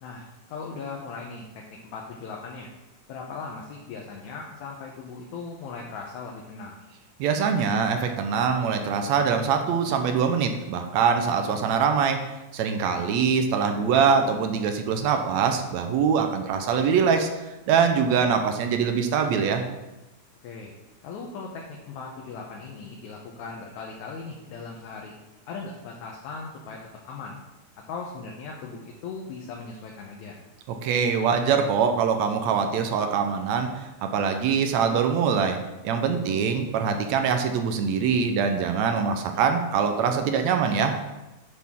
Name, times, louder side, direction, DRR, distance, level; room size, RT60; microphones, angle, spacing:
voice 1, 0.0-1.5 1.8-2.7 3.1-6.8 12.8-13.0 20.4-20.7 21.0-25.1 25.5-26.8 27.0-27.4 27.9-30.4 36.2-36.5, left 4 dB, 70° left, -1 dB, 2.2 m, -38 dB
voice 2, 7.2-12.2 12.5-17.3 17.7-19.6 30.7-35.6 35.8-40.9, right 6 dB, 75° right, 6 dB, 1.8 m, -23 dB
10.0 x 6.5 x 3.6 m, 1.0 s
omnidirectional pair, 3.7 m